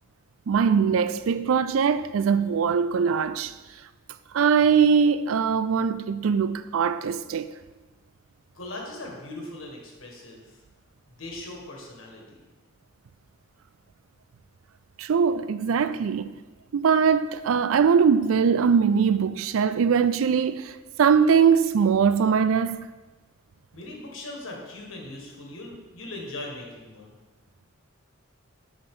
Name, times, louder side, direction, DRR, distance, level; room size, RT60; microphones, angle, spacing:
voice 1, 0.5-3.5 4.3-7.5 15.0-16.3 16.7-22.9, right 6 dB, 80° right, 0.4 m, -21 dB
voice 2, 8.5-10.6 11.1-12.4 23.7-27.1, left 2 dB, 75° left, 1.7 m, -39 dB
7.7 x 6.0 x 3.8 m
head